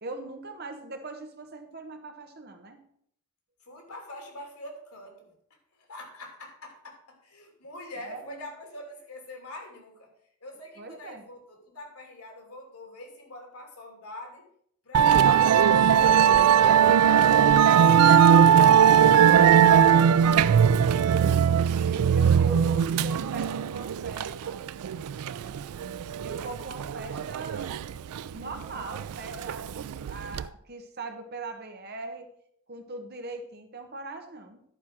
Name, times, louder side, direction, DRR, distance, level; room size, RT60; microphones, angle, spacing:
voice 1, 0.0-2.8 8.0-8.4 10.8-11.2 19.6-21.4 21.9-24.6 26.2-27.7 28.1-32.3 32.7-34.6, right 3 dB, 45° right, 5 dB, 1.2 m, -41 dB
voice 2, 3.6-10.1 10.4-14.5 14.8-15.7 16.0-17.9, left 1 dB, 90° left, 2 dB, 2.7 m, -44 dB
Musical instrument, 14.9-30.4, right 8 dB, 90° right, 0.4 m, -20 dB
11.0 x 4.8 x 5.9 m, 0.68 s
head